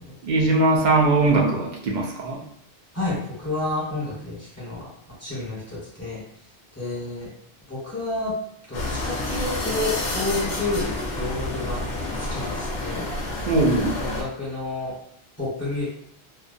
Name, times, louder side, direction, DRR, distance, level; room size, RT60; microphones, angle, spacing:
voice 1, 0.2-2.4 13.4-14.0, right 2 dB, 55° right, -1 dB, 0.6 m, -20 dB
voice 2, 2.9-6.2 6.7-7.3 7.7-8.4 8.7-11.8 12.1-13.1 13.9-14.9 15.4-15.8, left 2 dB, 15° left, -9 dB, 1.0 m, -30 dB
sound 1, 8.7-14.2, left 2 dB, 55° left, 0.6 m, -29 dB
2.3 x 2.1 x 2.6 m, 0.69 s
omnidirectional pair, 1.1 m